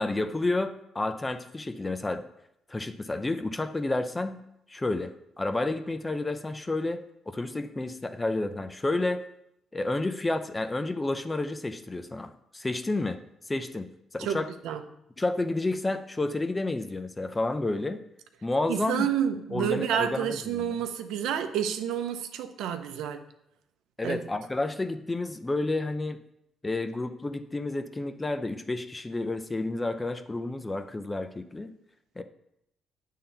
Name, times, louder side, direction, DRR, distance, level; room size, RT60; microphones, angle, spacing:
voice 1, 0.0-2.2 2.7-4.4 4.7-9.2 9.7-13.2 13.5-14.5 15.2-18.0 18.4-19.1 19.5-20.6 24.0-26.2 26.6-31.7 32.2-32.3, left 2 dB, 20° left, 9 dB, 0.6 m, -30 dB
voice 2, 14.2-14.8 18.7-23.2 24.0-24.2, right 9 dB, 90° right, 8 dB, 0.6 m, -29 dB
8.7 x 3.7 x 5.6 m, 0.79 s
cardioid pair, 90°, 0 cm